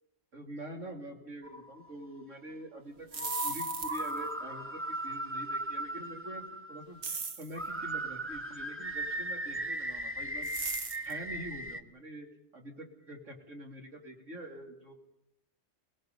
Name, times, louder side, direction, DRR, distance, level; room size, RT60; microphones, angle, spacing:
voice 1, 0.3-10.5 11.0-12.3 12.5-14.9, right 1 dB, 90° right, 1 dB, 3.3 m, -45 dB
sound 1, 1.4-2.2 3.1-7.2 7.6-11.8, right 1 dB, 10° right, 0.8 m, -37 dB
sound 2, 3.0-4.2 7.0-7.5 10.4-11.1, right 5 dB, 70° right, 1.6 m, -37 dB
30.0 x 19.0 x 5.5 m, 0.81 s
omnidirectional pair, 1.3 m